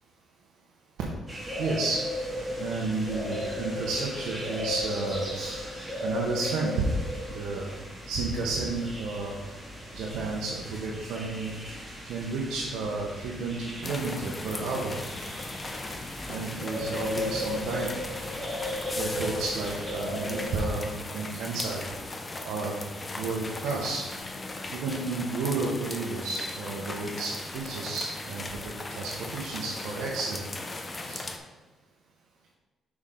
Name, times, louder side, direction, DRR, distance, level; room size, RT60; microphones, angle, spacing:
sound 1, 1.3-20.5, left 1 dB, 5° right, 2.3 m, -36 dB
voice 1, 1.6-2.0 2.6-5.7 6.0-6.9 7.3-7.7 8.1-9.4 9.9-11.5 12.1-15.0 16.2-18.0 19.0-21.8 22.4-22.8 23.2-24.1 24.7-30.4 31.0-31.2, right 3 dB, 85° right, -3 dB, 1.1 m, -32 dB
sound 2, 13.8-31.4, left 2 dB, 25° left, 0.9 m, -38 dB
6.3 x 6.2 x 3.8 m, 1.3 s
cardioid pair, 90°, 0 cm